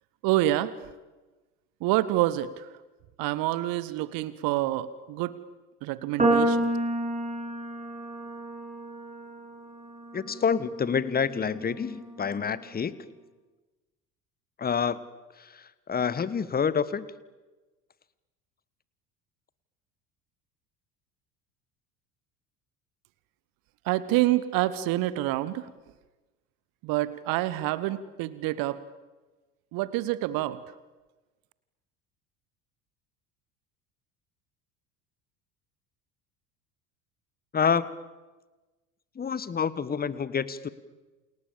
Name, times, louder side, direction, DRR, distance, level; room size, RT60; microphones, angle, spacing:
voice 1, 0.2-0.7 1.8-2.7 3.2-5.4 5.8-6.7 23.8-25.7 26.8-28.8 29.7-30.6, right 15 dB, 45° right, 17 dB, 1.3 m, -27 dB
sound 1, 6.2-12.5, right 1 dB, 15° right, 5.6 m, -30 dB
voice 2, 10.1-13.0 14.6-15.0 15.4-17.0 37.5-37.9 39.1-40.7, left 6 dB, 20° left, 18 dB, 1.4 m, -28 dB
29.0 x 28.5 x 7.2 m, 1.2 s
figure-of-eight pair, 65°, 47 cm